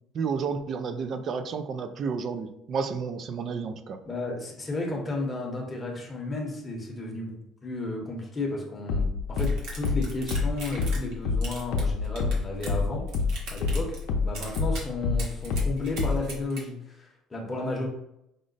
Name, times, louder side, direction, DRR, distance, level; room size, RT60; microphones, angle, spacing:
voice 1, 0.1-4.0, right 5 dB, 35° right, 9 dB, 0.3 m, -31 dB
voice 2, 4.1-7.3 7.6-13.0 13.5-17.9, left 2 dB, 15° left, -1 dB, 0.9 m, -33 dB
sound 1, 8.9-13.8 14.1-16.3, left 4 dB, 70° left, 0.6 m, -26 dB
sound 2, 9.4-11.1 11.4-12.8 13.1-14.0 14.3-14.8 15.2-16.6, right 3 dB, 70° right, 1.3 m, -40 dB
5.0 x 2.1 x 3.9 m, 0.82 s
cardioid pair, 160°, 0 cm